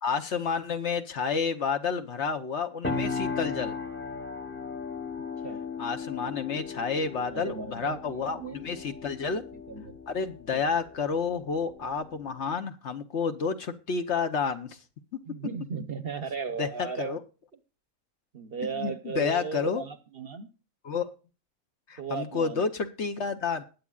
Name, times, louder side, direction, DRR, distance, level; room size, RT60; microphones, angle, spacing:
voice 1, 0.0-3.8 5.8-9.4 10.1-14.8 16.6-17.2 18.7-19.8 20.8-21.1 21.9-23.6, left 5 dB, 55° left, 9 dB, 1.1 m, -30 dB
sound 1, 2.8-12.6, left 4 dB, 10° left, 0.8 m, -37 dB
voice 2, 7.3-8.6 9.5-10.0 10.5-10.6 15.3-17.2 18.3-20.5 22.0-22.6, right 6 dB, 45° right, 11 dB, 1.0 m, -36 dB
20.5 x 8.4 x 2.4 m, 0.35 s
omnidirectional pair, 1.5 m